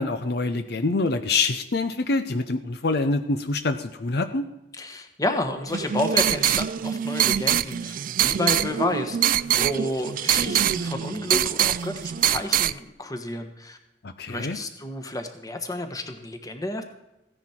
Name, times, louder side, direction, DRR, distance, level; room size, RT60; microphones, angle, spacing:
voice 1, 0.0-4.4 14.0-14.6, left 3 dB, 65° left, 9 dB, 0.7 m, -25 dB
voice 2, 4.7-13.8 14.3-16.8, left 2 dB, 20° left, 6 dB, 1.3 m, -30 dB
sound 1, 5.7-12.7, right 10 dB, 50° right, 0.3 m, -24 dB
15.5 x 10.0 x 4.4 m, 0.93 s
head